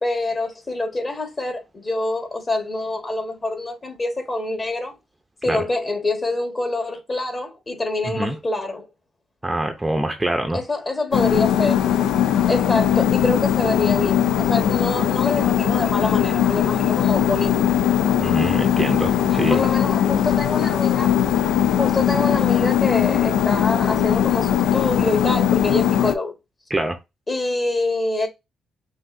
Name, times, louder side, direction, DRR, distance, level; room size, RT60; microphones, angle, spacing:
voice 1, 0.0-4.9 5.4-8.9 10.5-11.8 12.5-17.7 19.5-21.2 21.8-26.3 27.3-28.3, left 2 dB, 30° left, 1.4 m, -25 dB
voice 2, 9.4-10.6 18.2-19.6 26.7-27.0, right 1 dB, 10° right, 0.6 m, -24 dB
sound 1, 11.1-26.1, left 9 dB, 85° left, 0.3 m, -20 dB
5.6 x 2.6 x 2.6 m
cardioid pair, 90°, 0 cm